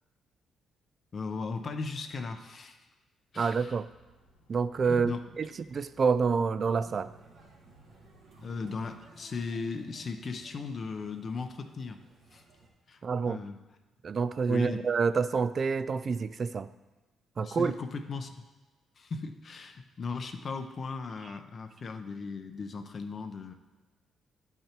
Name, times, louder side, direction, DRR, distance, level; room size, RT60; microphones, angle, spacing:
voice 1, 1.1-2.8 3.3-3.8 4.9-5.2 8.4-12.0 12.3-12.4 12.9-13.0 13.3-13.6 14.5-14.9 17.4-18.4 19.0-23.5, left 4 dB, 45° left, 6 dB, 0.6 m, -37 dB
voice 2, 3.4-3.9 4.5-7.1 13.0-13.4 14.0-16.7 17.4-17.7, right 5 dB, 45° right, 14 dB, 0.3 m, -28 dB
sound 1, 3.6-9.0, right 1 dB, 80° left, 1.2 m, -63 dB
sound 2, 6.7-12.7, right 3 dB, 70° right, 1.6 m, -56 dB
11.0 x 5.7 x 3.0 m, 1.2 s
cardioid pair, 90°, 0 cm